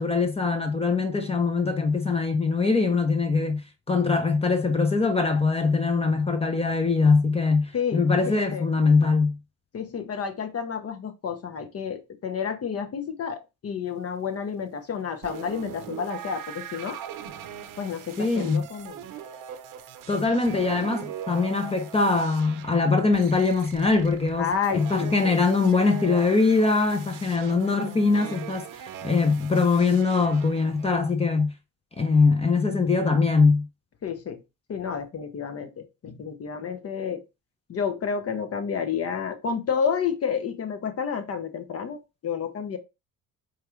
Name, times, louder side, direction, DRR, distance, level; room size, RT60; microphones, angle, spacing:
voice 1, 0.0-3.6 3.9-9.4 18.2-18.6 20.1-31.5 32.0-33.7, left 4 dB, 15° left, 0.7 m, -22 dB
voice 2, 7.7-8.7 9.7-17.0 17.8-19.0 24.4-25.3 34.0-34.4 34.7-35.7 36.0-37.2 37.7-42.8, left 7 dB, 45° left, 0.9 m, -30 dB
sound 1, 15.2-30.9, right 9 dB, 65° right, 0.7 m, -41 dB
4.6 x 2.5 x 3.0 m
supercardioid pair, 75°, 35 cm